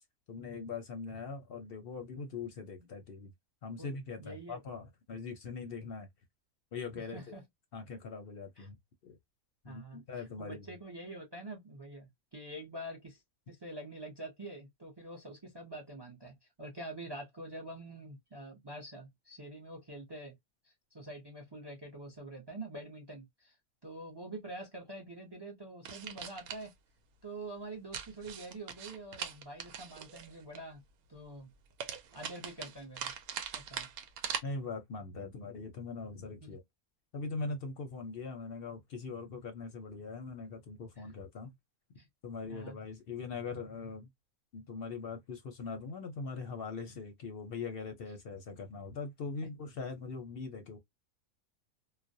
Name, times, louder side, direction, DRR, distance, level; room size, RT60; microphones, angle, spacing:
voice 1, 0.3-3.3 3.6-6.1 6.7-7.4 7.7-8.8 9.0-9.2 9.6-10.7 34.4-36.6 37.1-41.5 41.9-42.0 42.2-44.1 44.5-50.8, left 4 dB, 55° left, 0.6 m, -41 dB
voice 2, 4.2-4.6 7.0-7.4 8.6-8.7 9.6-13.2 13.5-20.3 20.6-23.6 23.8-26.7 27.2-30.8 31.1-31.5 31.8-33.1 33.5-33.9 36.4-36.6 41.0-41.1 42.0-42.1 42.5-42.8, right 1 dB, 35° right, 0.4 m, -46 dB
sound 1, 25.8-26.7 27.9-30.6 31.8-34.4, right 8 dB, 90° right, 1.0 m, -41 dB
2.4 x 2.1 x 2.5 m
omnidirectional pair, 1.5 m